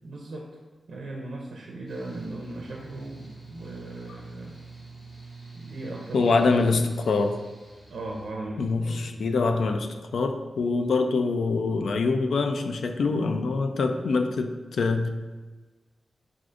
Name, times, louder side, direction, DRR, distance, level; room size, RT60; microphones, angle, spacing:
voice 1, 0.0-0.5 0.9-4.6 5.5-6.9 7.9-9.3, right 2 dB, 80° right, -1 dB, 0.5 m, -38 dB
Mechanical fan, 1.9-8.3, right 3 dB, 25° left, 0.9 m, -46 dB
voice 2, 6.1-7.4 8.6-15.1, left 3 dB, 75° left, 6 dB, 0.3 m, -25 dB
6.1 x 2.4 x 2.5 m, 1.3 s
wide cardioid pair, 170°, 0 cm